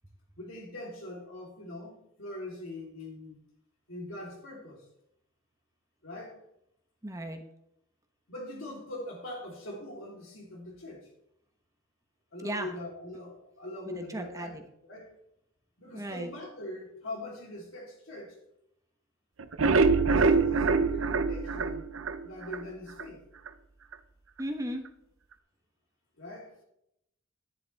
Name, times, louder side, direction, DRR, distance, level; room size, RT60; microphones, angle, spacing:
voice 1, 0.4-3.4 3.9-4.8 6.0-6.4 8.3-11.1 12.3-15.1 15.8-18.4 20.0-21.9 22.2-23.2 26.2-26.6, left 1 dB, 75° left, -1 dB, 3.5 m, -42 dB
voice 2, 7.0-7.4 12.4-12.7 13.9-14.6 15.9-16.3 24.4-24.8, right 1 dB, 15° right, 5 dB, 1.1 m, -36 dB
sound 1, 19.4-22.6 23.0-23.1 23.5-23.6 23.9-24.0, right 4 dB, 90° right, 0.7 m, -24 dB
11.0 x 10.5 x 3.5 m, 0.79 s
head